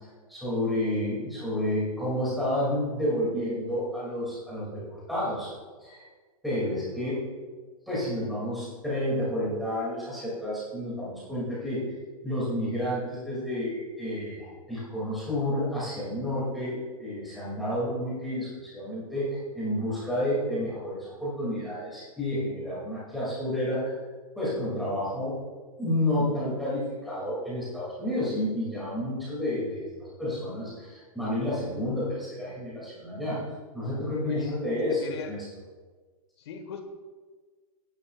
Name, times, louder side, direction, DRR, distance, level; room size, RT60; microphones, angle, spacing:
voice 1, 0.3-5.5 5.8-6.1 6.4-7.2 7.9-11.9 12.2-23.9 24.4-25.4 25.8-33.4 33.7-35.4, left 1 dB, ahead, -9 dB, 2.4 m, -30 dB
voice 2, 34.2-34.6 34.9-35.3 36.4-36.8, left 6 dB, 45° left, 5 dB, 1.4 m, -39 dB
19.5 x 9.9 x 2.4 m, 1.4 s
hypercardioid pair, 180°, 19 cm